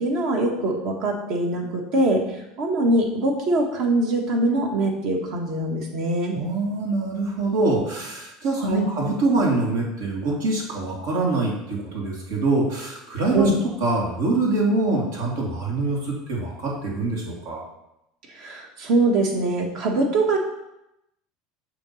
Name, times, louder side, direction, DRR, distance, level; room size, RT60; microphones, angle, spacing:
voice 1, 0.0-2.2 2.6-6.4 8.6-8.9 13.3-13.6 18.3-20.4, right 2 dB, 60° right, 2 dB, 1.4 m, -23 dB
voice 2, 6.3-13.5 13.8-17.6, right 2 dB, 80° right, -3 dB, 2.1 m, -24 dB
6.9 x 3.0 x 5.7 m, 0.87 s
supercardioid pair, 115°, 0 cm